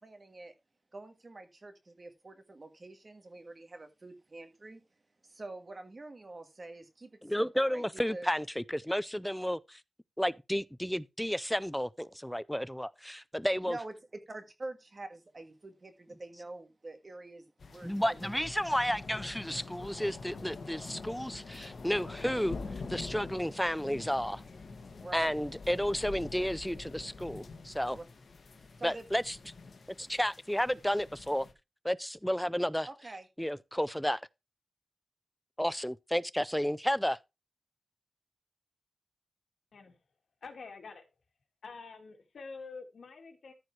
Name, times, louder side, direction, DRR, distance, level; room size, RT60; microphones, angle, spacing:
voice 1, 0.0-0.5 0.9-4.8 5.2-8.3 13.6-13.9 14.3-18.3 25.0-25.3 27.9-28.0 28.8-29.1 30.0-30.1 32.8-33.3, right 2 dB, 35° right, 1.7 m, -46 dB
voice 2, 7.2-9.8 10.2-13.8 17.8-22.6 22.9-24.4 25.1-28.0 28.8-29.3 30.0-31.5 31.8-32.9 33.4-34.2 35.6-37.2, equal, 5° left, 0.4 m, -32 dB
sound 1, 17.6-31.5, left 3 dB, 65° left, 1.6 m, -45 dB
voice 3, 40.4-41.0 41.6-43.5, left 4 dB, 80° left, 2.3 m, -47 dB
14.0 x 4.7 x 4.6 m
wide cardioid pair, 140°, 0 cm